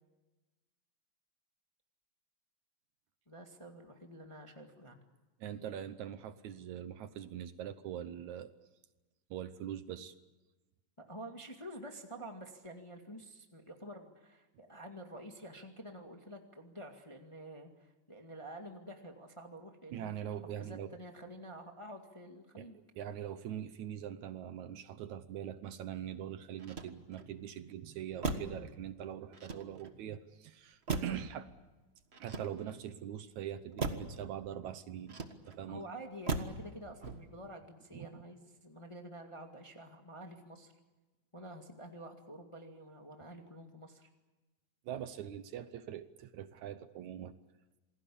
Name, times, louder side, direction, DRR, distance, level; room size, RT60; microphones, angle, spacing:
voice 1, 3.3-5.0 11.0-22.8 35.7-40.7 41.3-44.1, right 1 dB, 10° left, 4 dB, 1.5 m, -49 dB
voice 2, 5.4-8.5 9.3-10.1 19.9-20.9 22.6-22.7 23.0-31.5 32.2-35.2 35.4-35.8 37.9-38.2 44.9-47.3, right 10 dB, 70° right, 12 dB, 2.2 m, -42 dB
Motor vehicle (road), 26.5-27.4 28.2-28.7 29.3-30.0 30.9-31.3 32.1-32.9 33.8-34.2 35.1-35.7 36.3-36.7 37.0-37.5, right 3 dB, 40° right, 0.8 m, -38 dB
27.5 x 20.0 x 8.6 m, 1.1 s
omnidirectional pair, 3.7 m